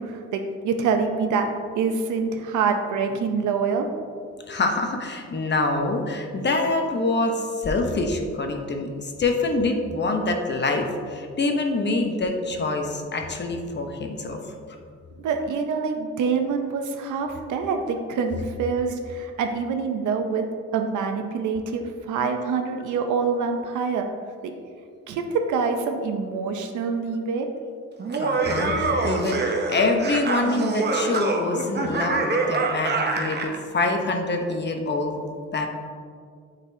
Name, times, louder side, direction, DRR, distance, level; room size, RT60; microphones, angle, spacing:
voice 1, 0.0-1.5 1.7-3.9 15.2-20.5 20.7-24.1 24.4-24.5 25.1-27.5, right 5 dB, 80° right, 5 dB, 0.7 m, -25 dB
voice 2, 4.5-14.4 28.2-35.2 35.5-35.7, left 2 dB, 35° left, 3 dB, 0.8 m, -25 dB
Laughter, 28.0-33.6, right 3 dB, 35° right, 0.7 m, -25 dB
9.1 x 4.1 x 2.7 m, 2.1 s
cardioid pair, 90°, 30 cm